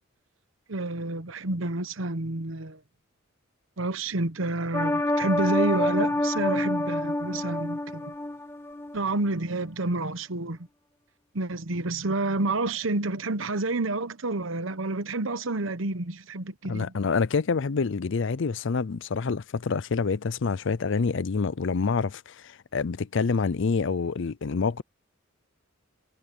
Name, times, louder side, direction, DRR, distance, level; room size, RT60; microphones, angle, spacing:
voice 1, 0.7-2.8 3.8-8.1 8.9-10.6 11.3-16.9, right 2 dB, 75° right, 1.0 m, -29 dB
sound 1, 4.7-9.0 9.3-9.4, left 1 dB, 15° left, 1.6 m, -27 dB
voice 2, 16.6-24.8, left 4 dB, 65° left, 0.5 m, -27 dB
head